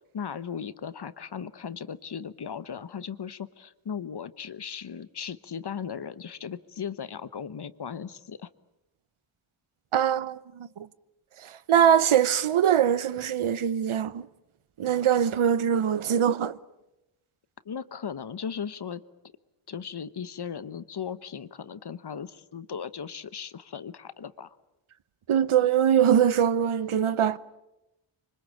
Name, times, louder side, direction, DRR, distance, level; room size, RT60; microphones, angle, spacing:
voice 1, 0.1-8.5 17.6-19.0 19.7-24.6, left 7 dB, 50° left, 1.1 m, -37 dB
voice 2, 9.9-10.9 11.4-14.3 14.8-16.6 25.3-27.4, right 9 dB, 80° right, 0.9 m, -23 dB
26.0 x 24.5 x 8.6 m
wide cardioid pair, 110°, 50 cm